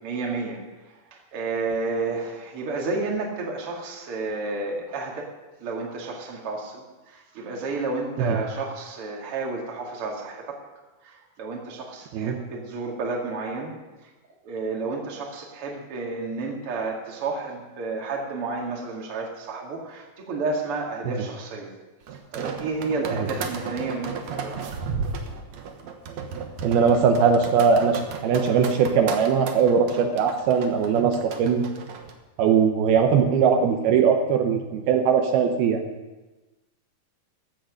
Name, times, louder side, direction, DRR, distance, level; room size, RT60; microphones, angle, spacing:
voice 1, 0.0-5.3 5.6-10.6 11.0-13.7 14.0-14.1 14.4-21.7 22.1-24.6, right 3 dB, 40° right, 0 dB, 2.6 m, -31 dB
sound 1, 22.1-32.1, right 5 dB, 60° right, 1.9 m, -34 dB
voice 2, 26.6-31.6 32.4-35.9, right 6 dB, 80° right, 4 dB, 2.8 m, -20 dB
14.5 x 9.3 x 6.5 m, 1.1 s
omnidirectional pair, 4.5 m